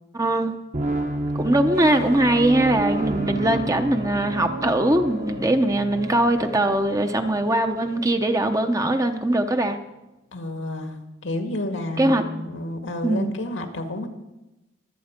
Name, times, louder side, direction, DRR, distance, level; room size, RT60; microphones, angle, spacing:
voice 1, 0.1-0.5 1.3-9.8 12.0-12.2 13.0-13.3, right 1 dB, 20° right, 7 dB, 0.9 m, -21 dB
sound 1, 0.7-8.1, right 1 dB, 40° right, 1.4 m, -30 dB
voice 2, 10.3-11.0 11.2-14.1, left 1 dB, 85° left, 5 dB, 2.0 m, -30 dB
22.5 x 8.5 x 5.2 m, 0.97 s
head